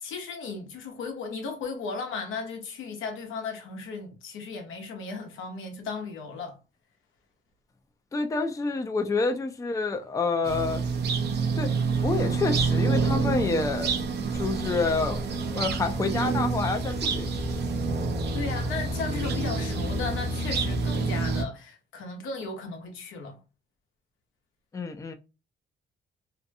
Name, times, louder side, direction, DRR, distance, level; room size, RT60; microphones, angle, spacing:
voice 1, 0.0-6.6 18.3-23.4, left 4 dB, 80° left, 0.8 m, -36 dB
voice 2, 8.1-10.8 11.6-11.7 12.0-13.9 14.3-15.2 15.5-17.3 24.7-25.1, left 3 dB, 15° left, 0.4 m, -28 dB
sound 1, 10.4-21.4, right 4 dB, 60° right, 0.6 m, -27 dB
2.7 x 2.2 x 2.5 m
cardioid pair, 90°, 20 cm